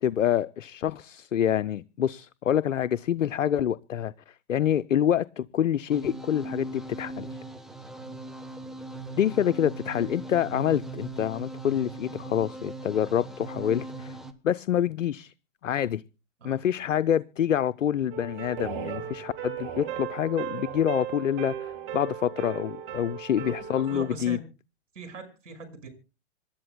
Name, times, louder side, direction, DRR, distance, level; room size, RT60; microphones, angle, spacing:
voice 1, 0.0-7.3 9.2-14.2 14.4-15.3 15.6-16.0 16.4-24.4, left 10 dB, 85° left, 0.6 m, -27 dB
sound 1, 5.9-14.3, right 2 dB, ahead, 1.0 m, -39 dB
sound 2, 18.1-24.1, right 10 dB, 45° right, 3.9 m, -36 dB
voice 2, 18.9-19.2 23.0-24.4 24.9-25.9, right 4 dB, 75° right, 5.5 m, -43 dB
26.5 x 11.5 x 2.2 m
hypercardioid pair, 115°, 37 cm